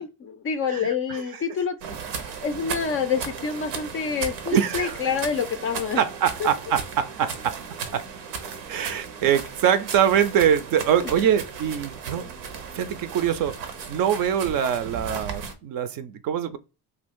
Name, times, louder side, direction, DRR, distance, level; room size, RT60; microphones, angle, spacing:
voice 1, 0.0-1.8 2.4-6.0 6.4-6.5, left 6 dB, 30° left, 0.3 m, -27 dB
voice 2, 0.7-1.2 4.5-5.0 5.9-7.6 7.9-8.1 8.7-12.3 12.7-13.6 13.9-16.6, right 9 dB, 45° right, 0.5 m, -24 dB
sound 1, 1.8-15.5, right 6 dB, 85° right, 0.7 m, -36 dB
2.7 x 2.3 x 3.5 m
hypercardioid pair, 65°, 48 cm